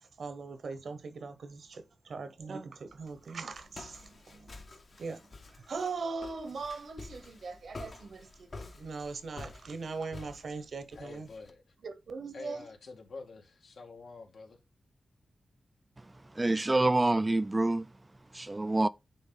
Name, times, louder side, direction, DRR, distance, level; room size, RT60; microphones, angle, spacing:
voice 1, 0.0-4.6 5.0-11.3 11.8-12.6, right 4 dB, 70° right, 1.0 m, -40 dB
Walk footsteps, 2.9-11.5, left 3 dB, 50° left, 1.1 m, -49 dB
voice 2, 10.9-11.7 12.3-14.6, left 3 dB, 75° left, 1.9 m, -47 dB
voice 3, 16.4-17.9 18.3-18.9, right 2 dB, 20° right, 0.3 m, -26 dB
9.8 x 3.6 x 3.9 m
wide cardioid pair, 110°, 0 cm